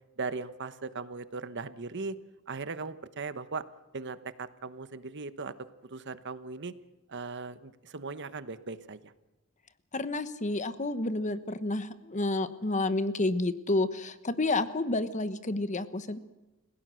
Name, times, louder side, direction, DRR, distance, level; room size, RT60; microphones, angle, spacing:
voice 1, 0.2-2.2 2.5-3.7 3.9-5.5 5.8-6.7 7.1-9.1, right 4 dB, 55° right, 13 dB, 1.1 m, -38 dB
voice 2, 9.9-16.2, left 2 dB, 35° left, 12 dB, 1.2 m, -30 dB
30.0 x 17.0 x 6.4 m, 1.1 s
head